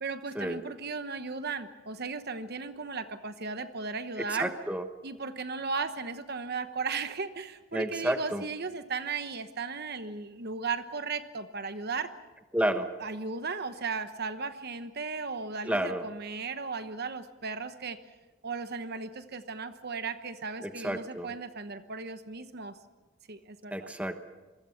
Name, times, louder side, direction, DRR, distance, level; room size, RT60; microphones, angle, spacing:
voice 1, 0.0-4.5 5.0-12.1 13.0-18.0 18.4-22.8 23.3-23.9, right 4 dB, 50° right, 10 dB, 1.1 m, -36 dB
voice 2, 4.3-4.8 7.7-8.4 12.5-12.9 15.6-16.0 20.6-21.3 23.7-24.2, right 1 dB, 5° right, 7 dB, 1.1 m, -30 dB
27.0 x 21.5 x 5.8 m, 1.2 s
head